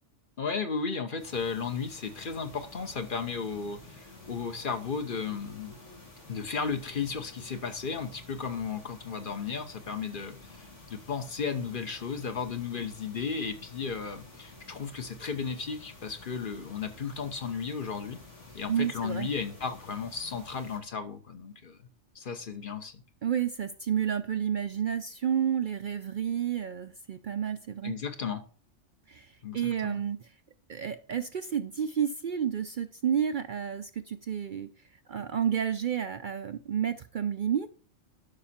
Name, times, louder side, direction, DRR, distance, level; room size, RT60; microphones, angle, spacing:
voice 1, 0.4-5.8 6.3-18.2 18.5-21.8 22.1-22.9 27.8-28.4 29.4-30.0, left 5 dB, 50° left, 1.1 m, -34 dB
sound 1, 1.2-20.8, left 2 dB, 80° left, 3.2 m, -51 dB
voice 2, 18.7-19.3 23.2-27.9 29.1-30.2 30.7-34.7 35.1-37.7, right 8 dB, 55° right, 0.6 m, -30 dB
11.5 x 6.1 x 4.3 m
omnidirectional pair, 1.2 m